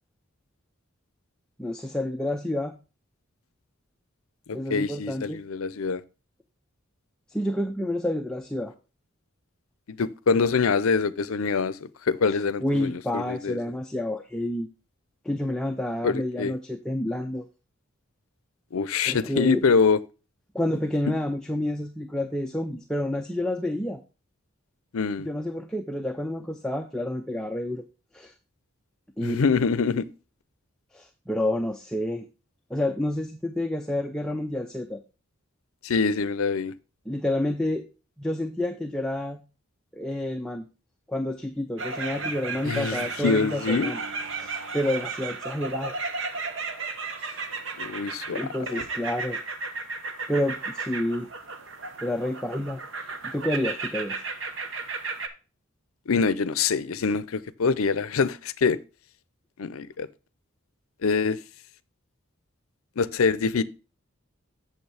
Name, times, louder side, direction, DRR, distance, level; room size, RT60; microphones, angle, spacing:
voice 1, 1.6-2.8 4.5-5.4 7.3-8.7 12.3-14.7 15.2-17.4 19.1-19.6 20.5-24.0 25.2-27.8 28.1-28.3 29.2-29.4 30.9-32.2 32.7-35.0 37.1-37.8 38.2-39.4 39.9-40.7 41.1-44.0 44.4-45.9 48.3-49.4 50.3-51.3 52.0-54.2, left 1 dB, 5° left, 0.5 m, -29 dB
voice 2, 4.5-6.0 9.9-13.6 16.0-16.5 18.7-20.0 24.9-25.3 29.2-30.1 35.8-36.7 42.6-43.9 47.8-48.5 56.1-58.8 59.6-60.1 61.0-61.4 63.0-63.6, left 5 dB, 75° left, 0.5 m, -25 dB
sound 1, 41.8-55.3, right 4 dB, 60° right, 0.9 m, -34 dB
8.0 x 7.1 x 3.3 m
head